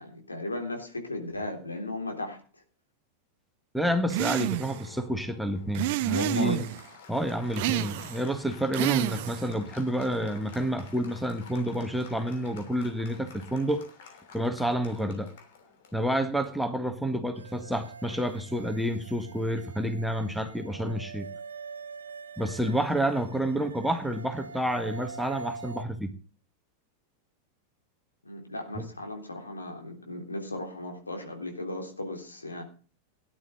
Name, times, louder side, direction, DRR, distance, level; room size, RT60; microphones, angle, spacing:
voice 1, 0.0-2.4 6.1-6.7 28.2-32.6, left 2 dB, 80° left, 3 dB, 3.6 m, -36 dB
voice 2, 3.7-6.7 7.1-13.8 14.3-15.3 15.9-21.3 22.4-26.1 28.8-28.9, right 1 dB, ahead, 7 dB, 1.6 m, -29 dB
sound 1, 4.1-4.9 5.7-6.8 7.6-8.3 8.7-9.5, right 18 dB, 50° right, 0.5 m, -29 dB
Applause, 4.4-18.7, left 6 dB, 55° left, 3.0 m, -52 dB
sound 2, 17.3-25.8, right 4 dB, 70° right, 1.0 m, -44 dB
17.5 x 10.5 x 3.9 m, 0.38 s
figure-of-eight pair, 90°, 0 cm